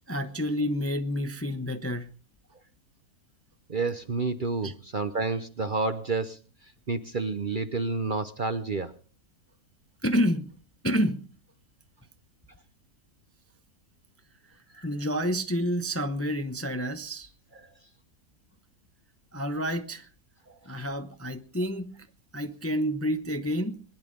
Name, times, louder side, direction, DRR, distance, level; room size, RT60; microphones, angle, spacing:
voice 1, 0.1-2.1 4.6-4.7 10.0-10.5 10.8-11.3 14.8-17.3 19.3-20.1 20.7-21.9 22.3-23.8, equal, 15° left, 0.7 m, -29 dB
voice 2, 3.7-6.4 6.9-8.9 14.8-14.9, right 3 dB, 40° right, 0.8 m, -29 dB
21.5 x 10.5 x 5.2 m
omnidirectional pair, 1.6 m